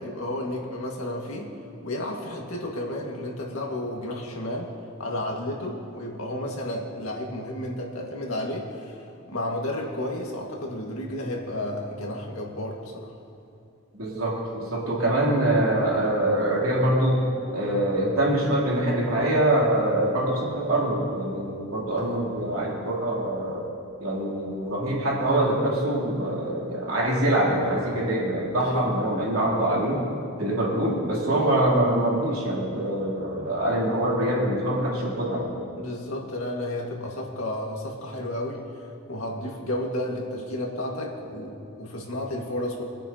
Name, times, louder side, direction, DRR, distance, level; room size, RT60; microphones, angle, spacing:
voice 1, 0.0-1.5 1.8-4.7 5.0-9.0 9.3-13.1 22.0-22.3 28.6-28.9 31.3-31.4 35.8-38.6 39.1-42.8, left 1 dB, 90° left, -1 dB, 1.9 m, -32 dB
voice 2, 14.0-17.2 17.5-23.6 24.0-30.0 30.4-35.5, right 1 dB, 85° right, -5 dB, 3.3 m, -24 dB
25.5 x 8.9 x 2.9 m, 2.5 s
head